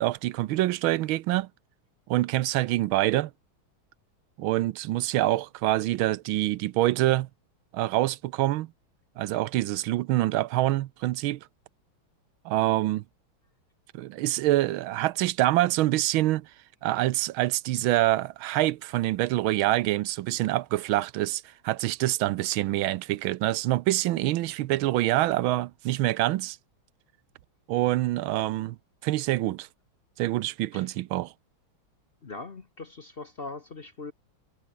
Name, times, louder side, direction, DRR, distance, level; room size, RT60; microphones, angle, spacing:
voice 1, 0.0-1.5 2.1-3.3 4.4-7.3 7.7-8.7 9.2-11.4 12.4-13.0 13.9-16.5 16.8-26.6 27.7-28.8 29.0-29.7 30.2-31.3, right 16 dB, 80° right, 1.5 m, -26 dB
voice 2, 32.2-34.1, left 3 dB, 35° left, 1.0 m, -40 dB
omnidirectional pair, 2.2 m